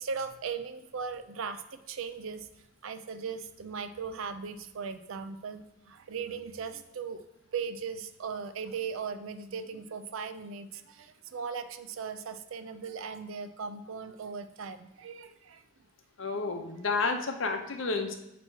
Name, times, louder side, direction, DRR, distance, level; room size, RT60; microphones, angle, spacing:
voice 1, 0.0-2.5 2.8-7.2 7.5-15.6, right 5 dB, 80° right, 10 dB, 0.5 m, -38 dB
voice 2, 16.2-18.1, left 4 dB, 70° left, 5 dB, 0.7 m, -30 dB
7.5 x 3.0 x 4.6 m, 0.90 s
head